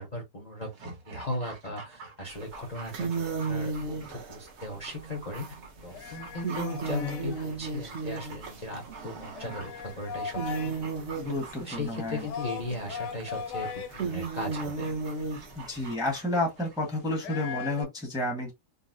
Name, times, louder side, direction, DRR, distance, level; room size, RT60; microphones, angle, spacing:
voice 1, 0.0-5.6 5.8-11.2 11.6-13.7 13.9-14.9, left 2 dB, 40° left, 0.6 m, -37 dB
Dog, 0.6-16.9 17.2-17.3, right 4 dB, 85° right, 2.0 m, -47 dB
sound 1, 2.3-2.5 2.8-9.8 10.1-15.9, right 4 dB, 55° right, 0.8 m, -35 dB
sound 2, 5.8-17.8, left 7 dB, 75° left, 1.2 m, -41 dB
voice 2, 11.2-12.2 15.6-18.5, left 1 dB, 5° right, 0.7 m, -31 dB
3.9 x 2.0 x 2.5 m
omnidirectional pair, 1.9 m